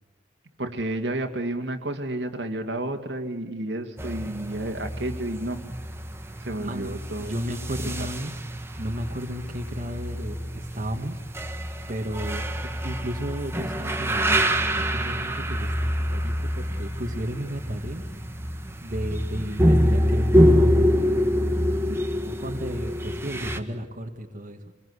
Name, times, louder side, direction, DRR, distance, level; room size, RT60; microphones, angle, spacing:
voice 1, 0.6-5.6 6.4-7.4 8.0-8.1 21.9-22.0, right 1 dB, 75° right, 4 dB, 2.4 m, -31 dB
sound 1, 4.0-23.6, equal, 15° right, 1.5 m, -26 dB
voice 2, 6.6-8.3 8.8-11.2 11.9-18.0 18.8-20.9 22.1-24.6, equal, 45° right, 2 dB, 1.9 m, -34 dB
26.5 x 21.5 x 8.2 m, 1.2 s
head